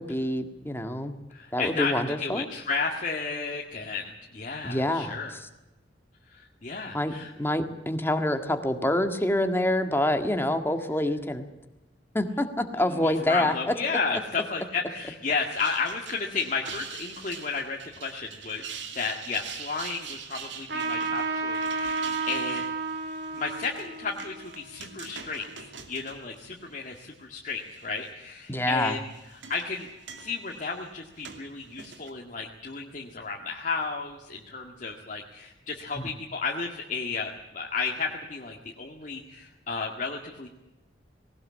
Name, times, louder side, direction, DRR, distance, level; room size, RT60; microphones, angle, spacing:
voice 1, 0.0-1.1 1.5-2.5 4.6-5.2 6.9-11.5 12.1-13.7 28.5-29.0, left 1 dB, 10° left, 7 dB, 1.8 m, -26 dB
voice 2, 1.3-5.3 6.3-7.3 12.8-18.7 18.9-22.7 23.3-29.1 29.5-29.9 30.2-40.5, left 4 dB, 45° left, 0 dB, 2.0 m, -33 dB
sound 1, 15.3-27.1 27.5-28.1 28.9-32.1, right 6 dB, 80° right, 2.6 m, -44 dB
Trumpet, 20.7-25.7, right 4 dB, 60° right, 3.8 m, -32 dB
19.5 x 18.5 x 8.6 m, 1.0 s
head